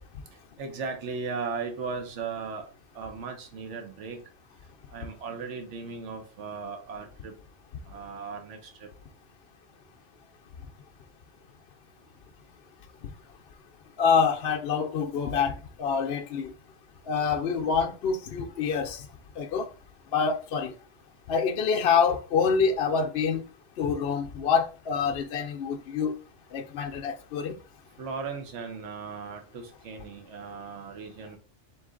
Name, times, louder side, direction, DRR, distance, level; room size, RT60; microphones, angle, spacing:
voice 1, 0.6-2.7 2.9-4.2 4.9-7.3 7.9-8.9 28.0-31.4, right 5 dB, 75° right, 1.1 m, -37 dB
voice 2, 14.0-16.5 17.1-19.1 19.4-19.7 20.1-20.7 21.3-23.4 23.8-26.2 26.5-27.6, left 6 dB, 65° left, 0.7 m, -26 dB
3.9 x 3.0 x 3.7 m
omnidirectional pair, 1.2 m